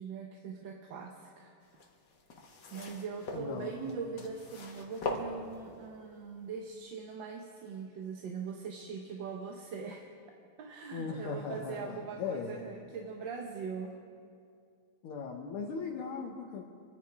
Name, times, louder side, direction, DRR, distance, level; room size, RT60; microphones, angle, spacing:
voice 1, 0.0-1.5 2.7-10.1 10.6-14.0, right 5 dB, 65° right, 2 dB, 1.6 m, -41 dB
sound 1, 1.7-5.9 6.7-6.8, left 3 dB, 55° left, 2.0 m, -41 dB
voice 2, 3.3-3.9 10.9-12.6 15.0-16.6, left 5 dB, 85° left, -1 dB, 2.1 m, -38 dB
27.0 x 10.0 x 4.8 m, 2.3 s
omnidirectional pair, 2.3 m